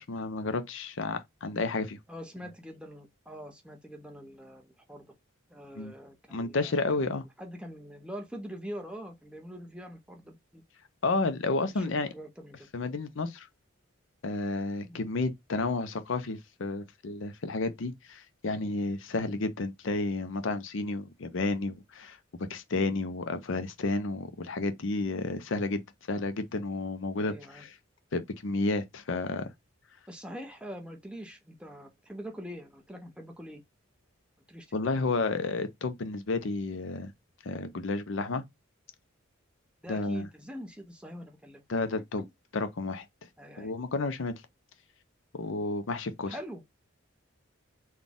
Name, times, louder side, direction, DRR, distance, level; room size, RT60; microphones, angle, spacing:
voice 1, 0.0-2.0 5.8-5.9 6.3-7.2 11.0-12.1 12.7-13.5 14.2-25.8 26.1-27.8 28.1-29.5 34.7-37.1 37.4-38.4 39.9-40.3 41.7-42.3 42.5-43.1 43.6-44.4 45.3-46.4, left 3 dB, 60° left, 0.6 m, -31 dB
voice 2, 2.1-5.1 5.5-10.6 11.6-11.8 12.1-12.7 14.8-15.0 27.2-27.6 30.1-33.6 34.5-34.7 35.1-35.2 39.8-41.6 41.9-42.3 43.4-43.7 46.3-46.6, equal, 5° right, 0.7 m, -44 dB
4.0 x 2.3 x 3.6 m
head